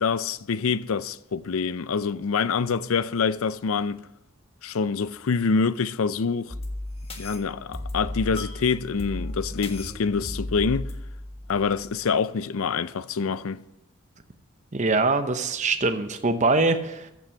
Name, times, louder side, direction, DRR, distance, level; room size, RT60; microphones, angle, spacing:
voice 1, 0.0-4.0 4.6-6.5 7.2-10.9 11.5-13.6, left 5 dB, 70° left, 0.5 m, -26 dB
sound 1, 6.5-12.1, left 1 dB, 25° left, 1.5 m, -35 dB
voice 2, 14.7-17.1, right 3 dB, 35° right, 0.8 m, -23 dB
14.5 x 6.1 x 7.2 m
head